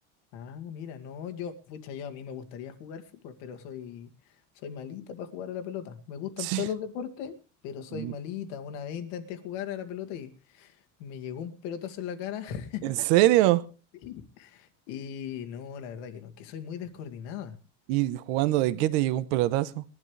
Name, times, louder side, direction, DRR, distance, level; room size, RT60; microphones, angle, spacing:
voice 1, 0.3-4.1 4.5-7.4 7.6-13.1 14.0-17.6 18.7-19.4, left 8 dB, 90° left, 6 dB, 2.2 m, -38 dB
voice 2, 12.8-13.6 17.9-19.8, right 16 dB, 80° right, 14 dB, 1.0 m, -24 dB
21.5 x 12.0 x 3.3 m, 0.36 s
cardioid pair, 175°, 35 cm